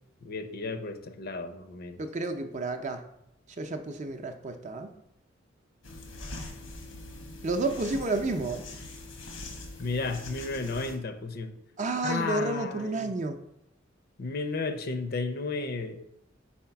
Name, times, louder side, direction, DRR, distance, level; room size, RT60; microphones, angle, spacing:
voice 1, 0.2-2.0 9.8-11.5 12.0-13.1 14.2-16.0, left 3 dB, 50° left, 9 dB, 0.6 m, -33 dB
voice 2, 2.0-3.0 3.6-4.9 7.4-8.6 11.8-13.4, right 2 dB, 40° right, 6 dB, 0.5 m, -31 dB
sound 1, 5.8-11.0, left 2 dB, 85° left, 1.2 m, -42 dB
4.6 x 4.3 x 5.8 m, 0.79 s
head